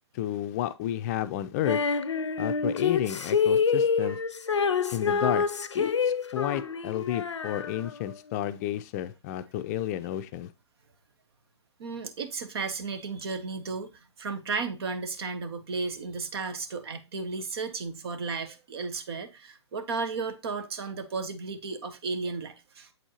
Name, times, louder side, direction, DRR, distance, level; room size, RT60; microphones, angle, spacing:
voice 1, 0.1-1.8 2.4-4.2 4.9-5.4 5.7-10.5, left 12 dB, 35° left, 0.4 m, -31 dB
Female singing, 1.6-8.1, left 6 dB, 90° left, 0.5 m, -27 dB
voice 2, 11.8-22.9, right 4 dB, 60° right, 1.1 m, -34 dB
7.8 x 4.4 x 2.9 m
hypercardioid pair, 125°, 15 cm